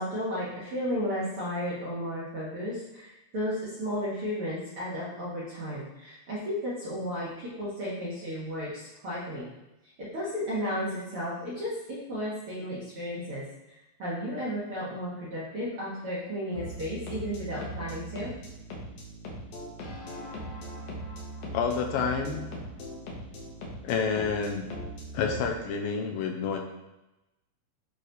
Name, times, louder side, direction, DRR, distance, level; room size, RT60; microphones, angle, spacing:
voice 1, 0.0-9.5 10.0-13.4 14.0-18.3, equal, 50° right, -9 dB, 1.8 m, -33 dB
sound 1, 16.5-25.5, right 1 dB, 65° left, 2.1 m, -40 dB
voice 2, 21.5-22.4 23.8-24.7 25.1-26.6, left 6 dB, 80° left, 2 dB, 2.4 m, -29 dB
9.1 x 3.3 x 4.0 m, 0.96 s
omnidirectional pair, 4.4 m